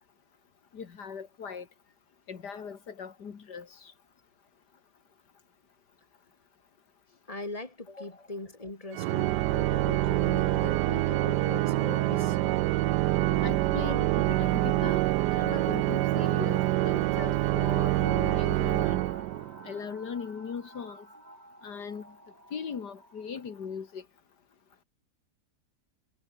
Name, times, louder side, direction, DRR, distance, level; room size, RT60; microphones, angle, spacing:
voice 1, 0.7-1.7 2.3-3.9 13.4-15.0 15.3-19.0 19.6-21.0 21.6-22.1 22.5-24.0, left 6 dB, 75° left, 2.4 m, -39 dB
voice 2, 7.3-12.4 13.2-13.6, left 2 dB, 20° left, 3.6 m, -40 dB
Organ, 8.9-19.7, right 16 dB, 85° right, 1.2 m, -26 dB
sound 1, 17.7-23.9, right 1 dB, 25° right, 5.7 m, -50 dB
omnidirectional pair, 1.8 m